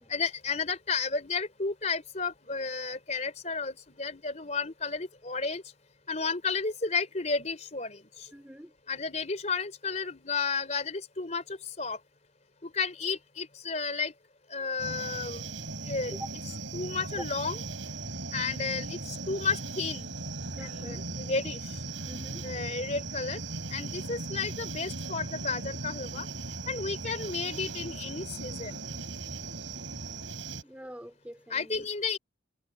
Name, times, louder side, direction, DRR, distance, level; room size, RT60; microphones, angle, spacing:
voice 1, 0.1-5.6 6.1-8.3 8.9-12.0 12.6-14.1 14.5-15.5 15.8-16.1 16.7-17.6 18.3-20.1 20.6-21.8 22.4-23.4 23.7-26.3 26.7-28.7 31.5-32.2, left 4 dB, 35° left, 4.0 m, -32 dB
voice 2, 8.3-8.7 16.1-16.3 17.1-17.2 20.5-21.0 22.1-22.5 30.6-31.9, right 1 dB, 5° right, 4.1 m, -44 dB
sound 1, 14.8-30.6, right 3 dB, 80° right, 6.3 m, -38 dB
head